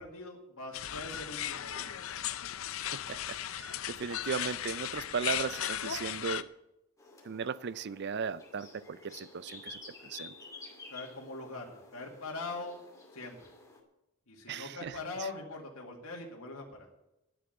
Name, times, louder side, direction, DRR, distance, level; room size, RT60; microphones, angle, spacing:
voice 1, 0.0-2.1 10.9-11.7 11.9-12.8 13.1-13.4 14.3-16.9, left 3 dB, 85° left, 2.1 m, -42 dB
sound 1, 0.7-6.4, left 10 dB, 70° left, 0.6 m, -36 dB
voice 2, 2.9-6.5 7.2-10.3 14.5-15.0, right 6 dB, 50° right, 0.5 m, -37 dB
sound 2, 7.0-13.8, left 3 dB, 15° left, 2.3 m, -51 dB
10.5 x 7.8 x 9.0 m
head